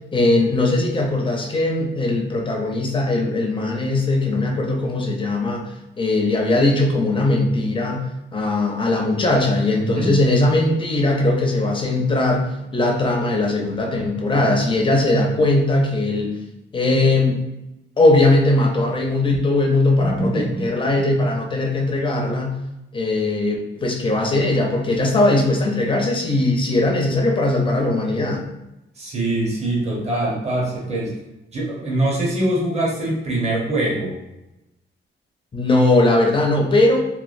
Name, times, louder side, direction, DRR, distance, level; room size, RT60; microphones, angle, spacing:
voice 1, 0.1-16.4 16.7-17.4 18.0-22.6 22.9-28.4 35.5-37.0, left 2 dB, 25° left, 0 dB, 0.4 m, -19 dB
voice 2, 9.8-10.1 20.0-20.7 29.0-31.1 31.5-34.2, right 1 dB, 30° right, -4 dB, 0.7 m, -23 dB
3.0 x 2.1 x 2.4 m, 0.93 s
wide cardioid pair, 150°, 20 cm